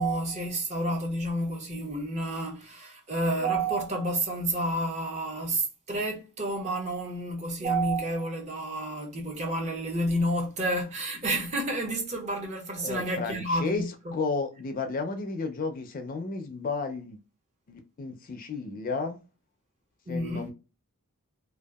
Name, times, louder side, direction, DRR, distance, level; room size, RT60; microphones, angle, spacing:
voice 1, 0.0-13.9 20.1-20.5, right 1 dB, 30° right, 0.6 m, -30 dB
voice 2, 12.8-13.8 14.1-17.2 17.7-19.2 20.1-20.5, left 4 dB, 40° left, 0.4 m, -32 dB
2.6 x 2.3 x 2.2 m
head